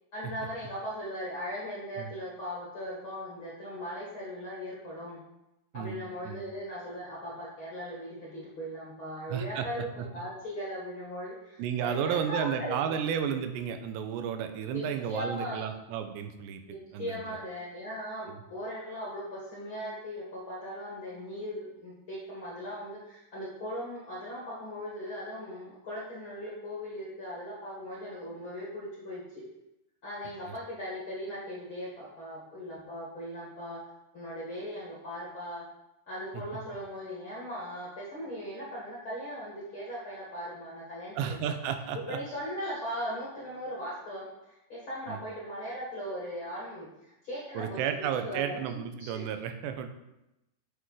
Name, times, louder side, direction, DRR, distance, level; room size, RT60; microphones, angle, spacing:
voice 1, 0.1-5.2 5.7-12.7 14.7-15.6 16.7-29.4 30.0-33.8 34.1-35.6 36.1-41.5 42.1-47.8 48.2-49.2, equal, 50° left, -5 dB, 1.5 m, -39 dB
voice 2, 5.7-6.4 9.3-10.1 11.6-16.6 16.9-17.4 18.3-18.4 30.5-30.6 36.3-36.4 41.2-42.2 45.1-45.2 47.5-49.9, right 8 dB, 90° right, 7 dB, 2.9 m, -33 dB
8.2 x 6.2 x 4.7 m, 0.91 s
omnidirectional pair, 4.9 m